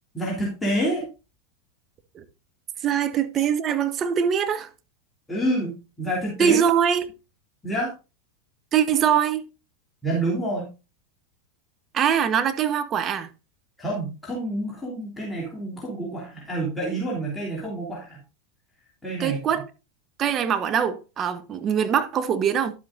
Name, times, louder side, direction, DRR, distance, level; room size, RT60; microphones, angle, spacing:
voice 1, 0.1-1.1 5.3-6.6 7.6-7.9 10.0-10.7 13.8-18.2 19.0-19.4, right 1 dB, 10° left, 3.3 m, -28 dB
voice 2, 2.8-4.7 6.4-7.1 8.7-9.5 11.9-13.3 19.2-19.7 20.2-22.7, right 8 dB, 35° right, 1.0 m, -23 dB
11.0 x 7.8 x 2.6 m
hypercardioid pair, 90°, 0 cm